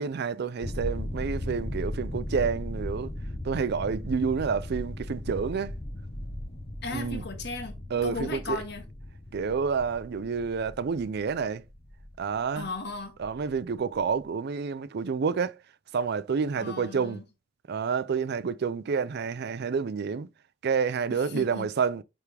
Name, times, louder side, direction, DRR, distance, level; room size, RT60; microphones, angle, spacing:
voice 1, 0.0-3.1 3.4-5.7 6.9-7.2 7.9-8.6 9.3-11.6 12.2-12.7 13.2-15.6 15.9-17.2 17.7-20.3 20.6-22.0, right 5 dB, 55° right, 0.4 m, -29 dB
sound 1, 0.6-14.2, left 1 dB, 30° left, 0.8 m, -37 dB
voice 2, 6.8-8.8 12.6-13.1 16.6-17.3 21.1-21.7, left 3 dB, 60° left, 1.8 m, -36 dB
9.2 x 3.6 x 3.3 m
head